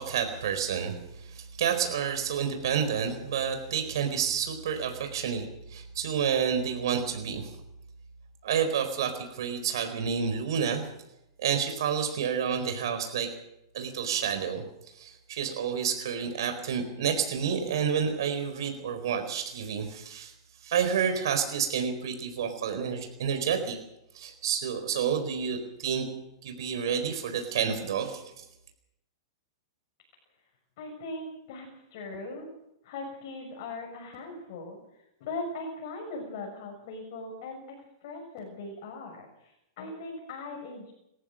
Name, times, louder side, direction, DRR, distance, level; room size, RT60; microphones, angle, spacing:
voice 1, 0.0-7.5 8.4-10.8 11.4-13.3 13.7-14.6 14.9-20.3 20.6-23.8 24.1-26.1 26.4-28.4, right 7 dB, 70° right, 6 dB, 4.4 m, -29 dB
voice 2, 30.8-32.5 32.8-34.8 35.2-37.6 38.0-40.9, left 2 dB, 50° left, 1 dB, 6.8 m, -39 dB
29.0 x 15.0 x 6.6 m, 0.86 s
supercardioid pair, 160°, 2 cm